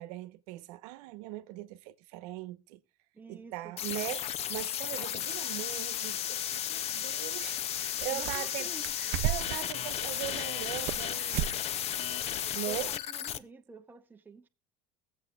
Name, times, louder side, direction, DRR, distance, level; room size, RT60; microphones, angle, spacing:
voice 1, 0.0-2.8 3.3-8.7 9.0-11.6 12.5-12.9, right 15 dB, 90° right, 1.0 m, -40 dB
voice 2, 3.1-3.7 8.1-9.0 12.6-14.5, right 3 dB, 10° right, 0.7 m, -49 dB
sound 1, 3.8-13.4, left 10 dB, 35° left, 0.5 m, -34 dB
sound 2, 5.7-5.8 7.4-7.5 7.7-8.6 8.8-9.6 10.1-11.0 11.3-11.6 11.9-12.0 12.5-12.6, right 13 dB, 55° right, 0.5 m, -34 dB
23.0 x 7.8 x 2.3 m
cardioid pair, 160°, 19 cm